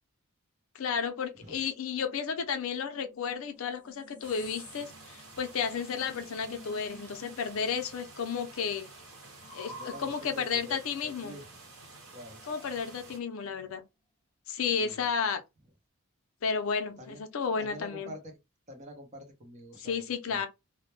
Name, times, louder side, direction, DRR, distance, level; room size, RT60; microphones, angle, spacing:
voice 1, 0.7-8.9 9.5-11.4 12.4-13.8 14.5-15.4 16.4-18.1 19.8-20.5, left 6 dB, 65° left, 0.5 m, -32 dB
sound 1, 2.3-7.9 8.1-10.6 12.2-13.3, equal, 5° left, 0.5 m, -52 dB
sound 2, 4.2-13.2, right 3 dB, 75° right, 1.0 m, -51 dB
voice 2, 9.7-11.4 12.1-12.4 14.8-15.1 17.0-17.2 17.6-18.3 18.7-20.4, equal, 30° right, 0.7 m, -46 dB
2.1 x 2.0 x 3.0 m
head